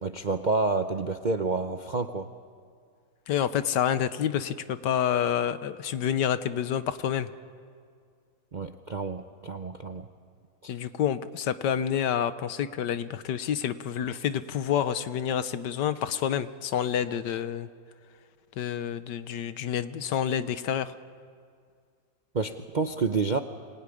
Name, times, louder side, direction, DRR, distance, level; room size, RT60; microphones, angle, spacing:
voice 1, 0.0-2.3 8.5-10.1 10.6-10.7 22.3-23.4, right 4 dB, 50° right, 7 dB, 0.5 m, -29 dB
voice 2, 3.3-7.3 10.7-17.7 18.6-20.9, left 9 dB, 75° left, 13 dB, 1.5 m, -28 dB
25.0 x 20.0 x 9.9 m, 2.1 s
omnidirectional pair, 1.9 m